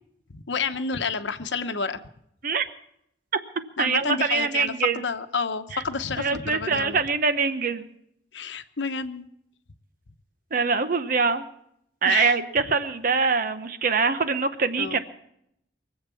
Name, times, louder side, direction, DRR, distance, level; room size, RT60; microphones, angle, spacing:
voice 1, 0.3-2.0 3.8-7.0 8.3-9.3 12.1-12.4 14.8-15.0, left 5 dB, 80° left, 9 dB, 0.9 m, -29 dB
voice 2, 3.8-5.0 5.7-5.8 6.2-7.9 10.5-11.4 12.0-15.0, right 5 dB, 50° right, 10 dB, 0.9 m, -24 dB
23.5 x 8.0 x 7.0 m, 0.75 s
head